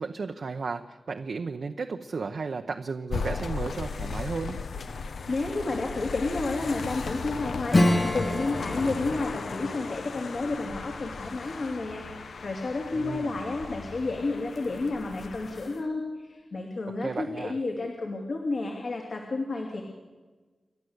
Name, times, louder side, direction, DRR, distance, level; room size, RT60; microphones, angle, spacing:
voice 1, 0.0-4.6 12.9-13.4 17.0-17.6, right 4 dB, 60° right, 5 dB, 0.8 m, -34 dB
sound 1, 3.1-15.8, left 4 dB, 75° left, 1.0 m, -36 dB
voice 2, 5.3-19.8, left 3 dB, 60° left, 0 dB, 2.8 m, -31 dB
Acoustic guitar / Strum, 7.7-12.0, left 1 dB, 25° left, 1.4 m, -29 dB
29.5 x 12.0 x 8.1 m, 1.3 s
wide cardioid pair, 145°, 0 cm